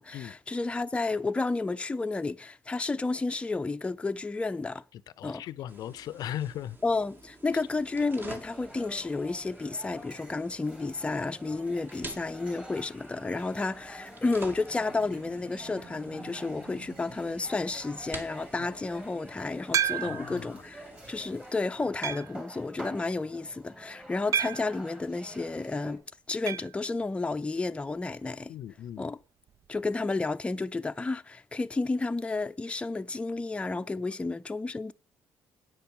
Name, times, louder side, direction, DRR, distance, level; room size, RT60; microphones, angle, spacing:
voice 1, 0.0-4.8 5.2-5.4 6.8-26.0 26.3-28.5 29.0-29.2 29.7-34.9, left 3 dB, 15° left, 0.6 m, -31 dB
voice 2, 4.9-6.8 20.0-20.6 28.5-29.1, left 11 dB, 70° left, 0.5 m, -38 dB
sound 1, 5.7-21.5, right 3 dB, 30° right, 2.1 m, -49 dB
sound 2, 7.5-26.0, right 1 dB, 15° right, 3.4 m, -48 dB
sound 3, 19.7-20.4 21.0-21.1 22.0-22.4 24.3-24.8 26.5-26.8 27.0-27.1 27.4-27.5 29.5-29.6, right 9 dB, 50° right, 0.4 m, -30 dB
9.4 x 5.8 x 7.2 m
cardioid pair, 80°, 7 cm